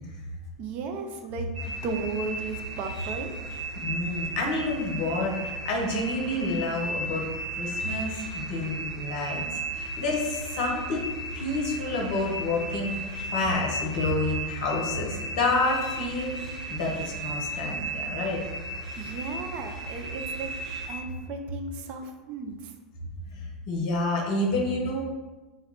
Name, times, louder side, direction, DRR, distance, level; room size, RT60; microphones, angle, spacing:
voice 1, 0.6-3.4 19.0-20.5 20.9-22.7, right 4 dB, 45° right, 5 dB, 0.3 m, -35 dB
sound 1, 1.5-20.9, right 1 dB, 65° right, 0.9 m, -35 dB
voice 2, 3.8-7.2 7.5-13.0 13.3-18.4 23.3-25.0, left 2 dB, 55° left, -1 dB, 0.6 m, -29 dB
2.2 x 2.1 x 3.4 m, 1.2 s
figure-of-eight pair, 85°, 4 cm